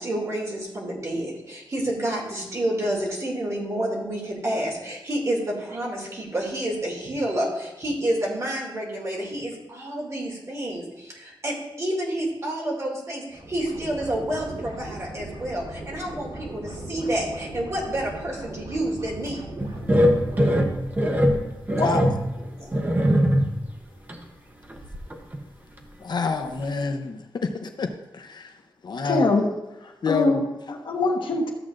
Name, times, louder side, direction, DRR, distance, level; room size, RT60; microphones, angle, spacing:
voice 1, 0.0-19.4 21.8-21.9 22.4-22.7, right 1 dB, 35° right, -2 dB, 2.3 m, -29 dB
sound 1, 13.3-20.6, right 1 dB, 90° right, 3.1 m, -38 dB
sound 2, 19.6-23.7 24.1-24.2 24.7-25.4 25.8-25.9 26.3-26.4, equal, 20° right, 0.8 m, -22 dB
voice 2, 21.8-22.1 26.0-28.5 28.8-29.3 30.0-30.5, left 4 dB, 60° left, 5 dB, 0.6 m, -27 dB
voice 3, 29.0-29.5 29.8-30.4 30.7-31.5, left 3 dB, 75° left, 1 dB, 1.2 m, -23 dB
13.5 x 7.5 x 2.5 m, 0.99 s
wide cardioid pair, 170°, 8 cm